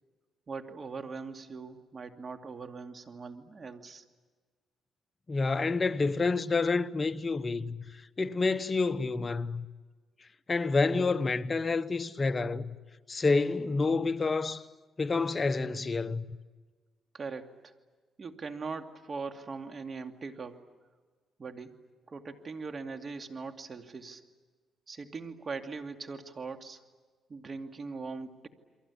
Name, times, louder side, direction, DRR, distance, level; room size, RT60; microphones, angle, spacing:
voice 1, 0.5-4.0 17.1-17.7 18.2-20.7 21.4-21.8 22.1-24.2 24.9-26.8 27.3-28.5, right 4 dB, 40° right, 2.4 m, -41 dB
voice 2, 5.3-7.8 8.2-9.7 10.5-12.8 13.1-14.6 15.0-16.2, left 3 dB, 30° left, 1.1 m, -28 dB
29.5 x 23.5 x 8.5 m
cardioid pair, 90°, 0 cm